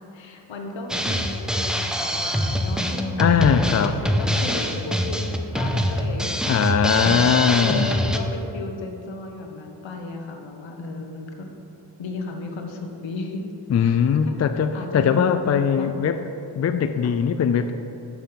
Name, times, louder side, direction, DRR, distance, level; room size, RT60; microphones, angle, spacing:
voice 1, 0.1-11.6 12.0-13.5 13.8-14.4 14.7-16.2 17.0-17.1, left 3 dB, 65° left, 3 dB, 1.2 m, -34 dB
Drum kit, 0.9-8.2, equal, ahead, 0.7 m, -24 dB
voice 2, 3.2-4.0 6.5-8.0 13.7-16.2 16.6-17.7, left 7 dB, 35° left, 9 dB, 0.4 m, -20 dB
6.7 x 5.7 x 5.8 m, 2.8 s
supercardioid pair, 50°, 50 cm